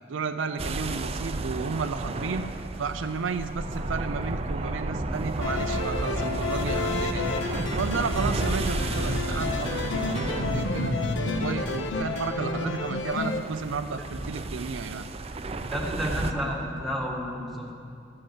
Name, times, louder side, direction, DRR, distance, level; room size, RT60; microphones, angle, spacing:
voice 1, 0.1-7.3 7.8-15.1, right 5 dB, 90° right, 7 dB, 0.5 m, -33 dB
sound 1, 0.6-16.3, right 2 dB, 30° right, 0.5 m, -32 dB
sound 2, 5.4-13.4, left 3 dB, 70° left, 0.8 m, -30 dB
voice 2, 15.7-17.7, equal, ahead, -3 dB, 1.9 m, -31 dB
14.5 x 7.7 x 7.5 m, 2.5 s
head